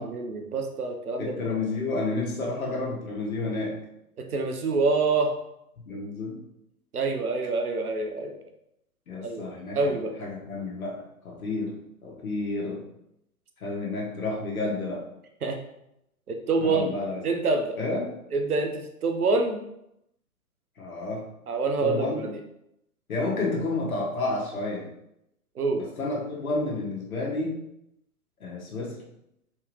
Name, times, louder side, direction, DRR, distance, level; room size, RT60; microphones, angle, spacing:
voice 1, 0.0-1.3 4.2-5.3 6.9-8.4 9.2-9.4 9.7-10.1 15.4-15.6 16.3-16.9 17.2-17.8 18.3-19.6 21.5-22.4 25.6-25.8, right 3 dB, 80° right, 5 dB, 1.0 m, -26 dB
voice 2, 1.2-3.8 5.9-6.4 9.1-11.8 12.0-12.8 13.6-15.1 16.6-17.2 17.8-18.1 20.8-21.3 21.8-22.2 23.1-24.9 25.8-27.6 28.4-29.0, left 2 dB, 70° left, -2 dB, 1.7 m, -30 dB
4.2 x 3.6 x 3.2 m, 0.80 s
figure-of-eight pair, 125°, 44 cm